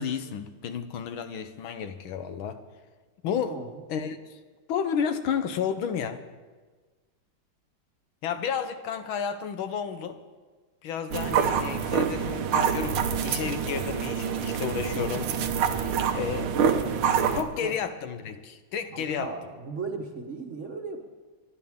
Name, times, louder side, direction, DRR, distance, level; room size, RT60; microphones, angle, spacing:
voice 1, 0.0-2.6 3.2-3.6 3.9-4.2 4.7-6.2 8.2-10.2 10.8-15.3 16.1-16.5 17.4-19.3, left 7 dB, 75° left, 9 dB, 1.6 m, -31 dB
sound 1, 11.1-17.4, right 7 dB, 85° right, 1.8 m, -26 dB
voice 2, 16.1-17.0 17.3-17.7 18.9-21.0, right 4 dB, 40° right, 2 dB, 1.3 m, -38 dB
26.0 x 11.5 x 3.6 m, 1.4 s
omnidirectional pair, 2.3 m